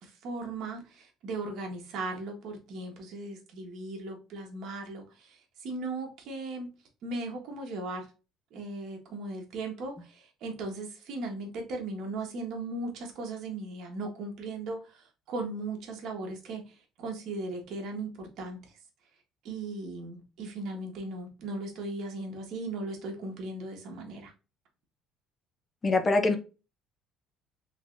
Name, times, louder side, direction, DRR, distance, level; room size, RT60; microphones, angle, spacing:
voice 1, 0.0-6.7 7.0-8.1 8.5-18.6 19.4-24.3, right 2 dB, 55° right, 1.4 m, -37 dB
voice 2, 25.8-26.4, left 3 dB, 20° left, 0.6 m, -23 dB
3.8 x 3.6 x 2.5 m
cardioid pair, 155°, 0 cm